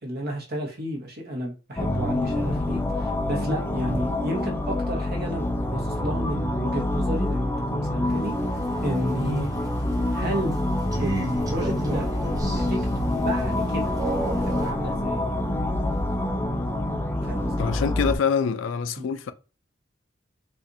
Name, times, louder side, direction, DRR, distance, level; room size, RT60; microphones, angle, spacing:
voice 1, 0.0-9.5 10.1-10.6 11.0-12.1 12.4-13.9 14.4-15.2 17.2-17.7 19.0-19.1, equal, 55° right, 1.0 m, -32 dB
sound 1, 1.8-18.2, left 1 dB, 10° left, 0.4 m, -26 dB
Crow, 8.0-14.7, right 1 dB, 20° right, 0.7 m, -35 dB
voice 2, 17.6-19.3, left 6 dB, 80° left, 0.3 m, -25 dB
4.2 x 2.4 x 2.5 m
head